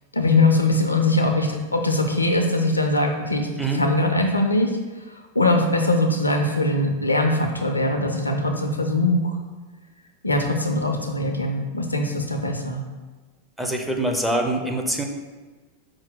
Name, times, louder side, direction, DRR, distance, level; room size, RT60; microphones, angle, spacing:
voice 1, 0.1-3.5 3.7-4.7 5.4-9.3 10.2-12.8, left 2 dB, 85° left, 4 dB, 0.4 m, -21 dB
voice 2, 13.6-15.0, right 1 dB, 5° right, 1 dB, 0.5 m, -24 dB
4.6 x 2.1 x 3.8 m, 1.3 s
figure-of-eight pair, 90°, 0 cm